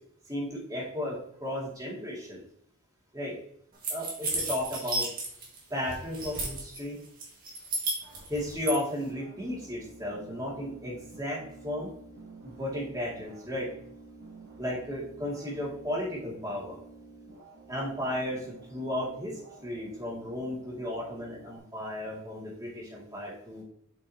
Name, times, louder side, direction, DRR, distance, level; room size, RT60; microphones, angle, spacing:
voice 1, 0.3-2.4 3.1-3.3 3.9-5.0 5.7-7.0 8.3-11.9 12.4-13.7 14.6-16.8 17.7-23.6, left 1 dB, 15° right, -6 dB, 2.3 m, -34 dB
sound 1, 3.8-5.6 5.9-6.8 7.2-8.7, right 2 dB, 40° right, 1.8 m, -32 dB
sound 2, 9.0-21.6, right 3 dB, 75° right, 2.1 m, -50 dB
7.6 x 5.4 x 2.8 m, 0.66 s
head